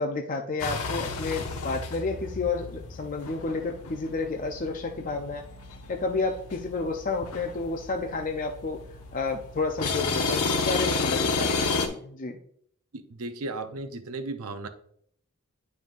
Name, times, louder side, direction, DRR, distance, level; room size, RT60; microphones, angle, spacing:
voice 1, 0.0-5.4 5.9-8.8 9.1-12.4, left 3 dB, 35° left, 3 dB, 0.5 m, -31 dB
sound 1, 0.6-11.9, left 4 dB, 80° left, 1.0 m, -32 dB
voice 2, 12.9-14.7, right 2 dB, 70° right, 8 dB, 0.6 m, -35 dB
9.3 x 5.3 x 2.5 m, 0.66 s
head